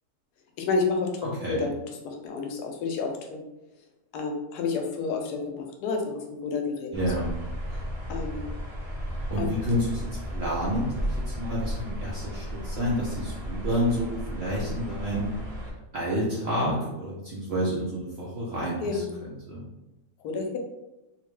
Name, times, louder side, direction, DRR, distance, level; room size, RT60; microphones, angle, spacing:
voice 1, 0.6-1.1 1.5-3.4 4.1-6.9 8.1-8.5 9.4-9.5 18.8-19.2 20.2-20.6, left 4 dB, 80° left, 3 dB, 1.1 m, -30 dB
voice 2, 1.2-1.7 6.9-7.3 9.3-15.3 15.9-19.6, equal, 60° right, -6 dB, 0.6 m, -29 dB
sound 1, 6.9-15.7, equal, 45° right, 1.0 m, -34 dB
2.9 x 2.1 x 3.1 m, 0.98 s
omnidirectional pair, 1.7 m